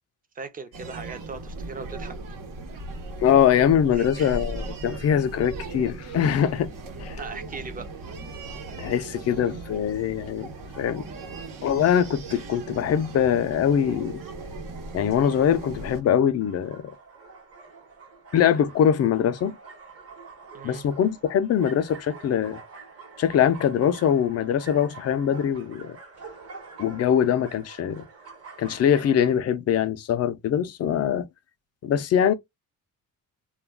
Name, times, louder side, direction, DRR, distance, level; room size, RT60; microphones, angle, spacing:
voice 1, 0.3-2.1 3.9-4.4 7.2-7.9 20.5-20.8, right 4 dB, 25° right, 0.5 m, -39 dB
sound 1, 0.7-16.0, right 3 dB, 75° right, 1.0 m, -37 dB
voice 2, 3.2-6.7 7.0-7.2 8.8-11.1 11.6-14.2 14.9-16.9 18.3-19.6 20.6-22.6 23.2-26.0 26.8-28.0 28.6-31.3 31.8-32.3, left 9 dB, 50° left, 0.4 m, -23 dB
sound 2, 14.7-29.4, right 4 dB, 45° right, 1.0 m, -46 dB
2.3 x 2.2 x 3.3 m
cardioid pair, 155°, 34 cm